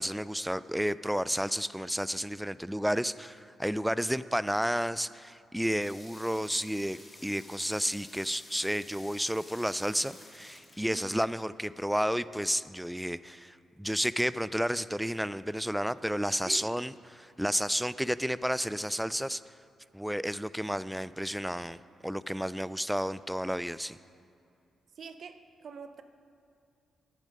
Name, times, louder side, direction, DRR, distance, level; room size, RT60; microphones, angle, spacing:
voice 1, 0.0-19.4 19.9-21.8 22.0-24.0, equal, 5° right, 17 dB, 0.3 m, -31 dB
sound 1, 5.8-11.6, left 1 dB, 25° left, 2.7 m, -52 dB
voice 2, 10.8-11.2 16.4-16.7 24.9-26.0, right 5 dB, 65° right, 9 dB, 0.7 m, -45 dB
10.0 x 9.4 x 5.4 m, 2.5 s
supercardioid pair, 60°, 0 cm